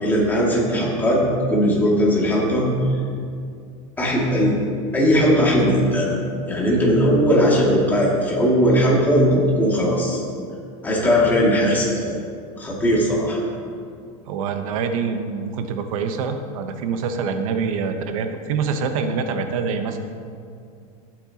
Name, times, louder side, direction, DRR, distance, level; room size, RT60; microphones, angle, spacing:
voice 1, 0.0-1.2 1.5-2.7 4.0-4.6 4.9-6.1 6.5-10.2 10.8-12.2 12.6-13.4, equal, 10° left, -5 dB, 2.4 m, -18 dB
voice 2, 14.3-20.0, right 5 dB, 75° right, 6 dB, 1.1 m, -25 dB
15.0 x 8.9 x 3.0 m, 2.3 s
supercardioid pair, 150°, 18 cm